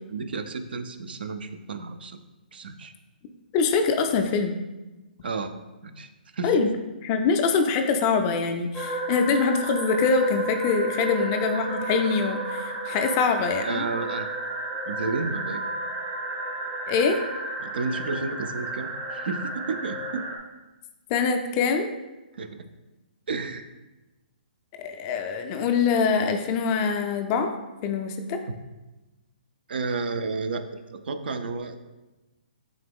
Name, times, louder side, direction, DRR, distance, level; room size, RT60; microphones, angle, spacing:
voice 1, 0.1-2.2 2.5-2.9 5.2-5.5 5.8-6.7 13.6-14.3 14.7-15.6 17.6-20.2 22.3-22.6 23.3-23.7 29.7-30.6 30.9-31.8, right 4 dB, 75° right, 9 dB, 0.4 m, -31 dB
voice 2, 3.5-4.5 6.4-6.7 7.1-13.8 16.9-17.2 21.1-21.9 24.8-27.5 27.8-28.4, left 5 dB, 25° left, 6 dB, 0.3 m, -24 dB
sound 1, 8.7-20.4, right 2 dB, 20° right, 0.5 m, -32 dB
3.8 x 2.9 x 3.5 m, 1.1 s
hypercardioid pair, 150°, 5 cm